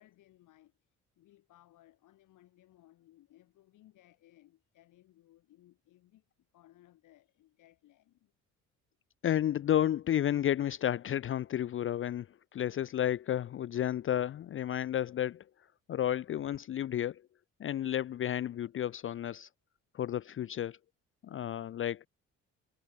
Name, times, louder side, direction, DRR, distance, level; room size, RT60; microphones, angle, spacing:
voice 1, 0.0-8.3, left 14 dB, 85° left, 4.8 m, -63 dB
voice 2, 9.2-12.3 12.5-15.4 15.9-17.2 17.6-19.5 19.9-20.8 21.2-22.1, left 11 dB, 45° left, 0.5 m, -32 dB
cardioid pair, 90°, 30 cm